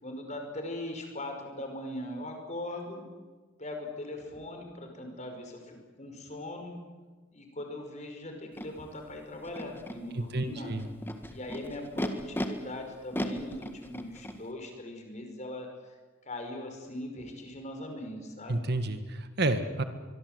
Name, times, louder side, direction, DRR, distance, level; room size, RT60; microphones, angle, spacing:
voice 1, 0.0-3.0 3.6-6.7 7.3-10.8 11.3-15.7 16.3-18.6, left 1 dB, 35° left, 4 dB, 5.3 m, -40 dB
Animal, 8.6-8.7 9.4-10.0 10.8-12.5 13.1-14.4, equal, 10° left, 1.8 m, -35 dB
voice 2, 10.1-10.9 18.5-19.8, right 2 dB, 55° right, 9 dB, 1.7 m, -30 dB
24.5 x 23.0 x 8.1 m, 1.4 s
head